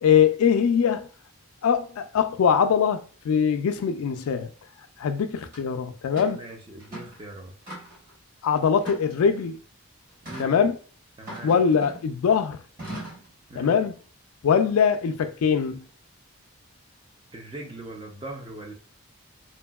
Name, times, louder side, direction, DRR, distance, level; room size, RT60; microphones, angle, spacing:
voice 1, 0.0-1.1 1.6-4.5 5.0-6.4 8.4-9.6 10.4-10.8 11.4-12.6 13.6-13.9 14.4-15.8, left 7 dB, 75° left, 0.3 m, -22 dB
sound 1, 5.5-5.6 6.2-6.4 6.8-7.2 7.7-8.1 8.8-9.5 10.2-10.5 11.3-12.1 12.8-13.3, right 1 dB, 40° right, 1.3 m, -39 dB
voice 2, 6.2-7.5 10.2-10.6 11.2-11.6 13.5-13.8 17.3-18.7, right 2 dB, 20° right, 0.4 m, -40 dB
2.8 x 2.6 x 2.2 m
head